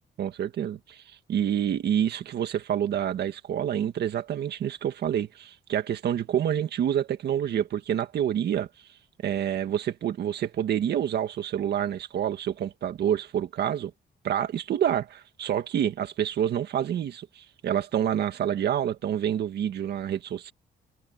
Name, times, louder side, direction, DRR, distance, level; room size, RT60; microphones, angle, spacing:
voice 1, 0.2-8.7 9.2-13.9 14.2-20.5, right 10 dB, 70° right, 1.9 m, -28 dB
cardioid pair, 150°, 18 cm